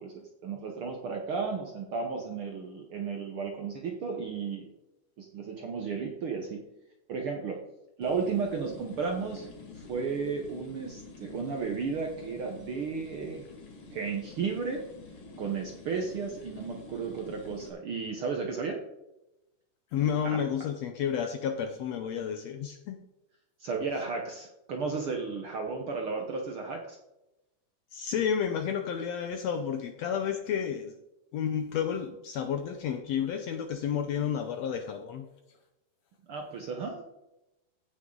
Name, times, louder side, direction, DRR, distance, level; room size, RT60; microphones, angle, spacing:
voice 1, 0.0-4.7 5.2-6.6 7.1-7.6 8.0-13.4 13.9-14.8 15.4-18.8 20.2-20.4 23.6-27.0 36.3-37.0, right 5 dB, 75° right, 2 dB, 1.2 m, -34 dB
sound 1, 8.0-17.7, left 3 dB, 40° left, 2.1 m, -48 dB
voice 2, 19.9-23.0 27.9-30.9 31.3-35.3, left 8 dB, 80° left, 6 dB, 1.5 m, -31 dB
16.0 x 6.3 x 3.8 m, 0.92 s
omnidirectional pair, 3.9 m